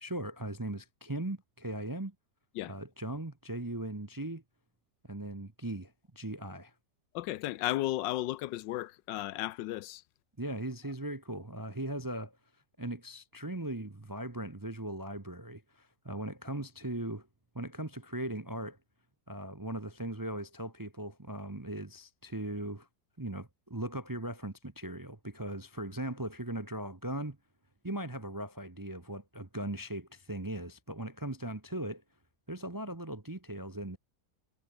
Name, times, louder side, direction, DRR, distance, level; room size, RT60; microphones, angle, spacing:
voice 1, 0.0-2.1 2.6-4.4 5.0-6.7 10.4-12.4 12.8-17.3 17.5-18.8 19.3-22.9 23.2-27.4 27.8-32.0 32.5-34.0, right 1 dB, 20° right, 0.6 m, -39 dB
voice 2, 7.1-10.0, left 15 dB, 85° left, 1.3 m, -34 dB
omnidirectional pair, 1.9 m